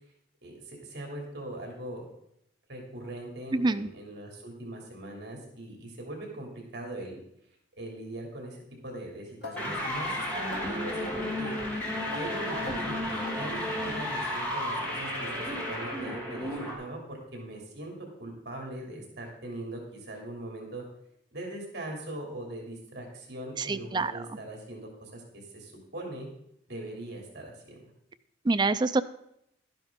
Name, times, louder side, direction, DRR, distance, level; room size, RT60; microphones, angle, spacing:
voice 1, 0.4-2.1 2.7-7.2 7.8-20.8 21.3-26.3 26.7-27.8, right 1 dB, 65° right, 0 dB, 2.9 m, -41 dB
voice 2, 3.5-3.9 23.6-24.1 28.5-29.0, right 3 dB, 25° right, 11 dB, 0.4 m, -26 dB
sound 1, 9.4-14.0, left 2 dB, 60° left, 1.4 m, -44 dB
sound 2, 9.6-16.7, left 1 dB, 10° left, 2.9 m, -33 dB
12.0 x 10.5 x 3.7 m, 0.76 s
head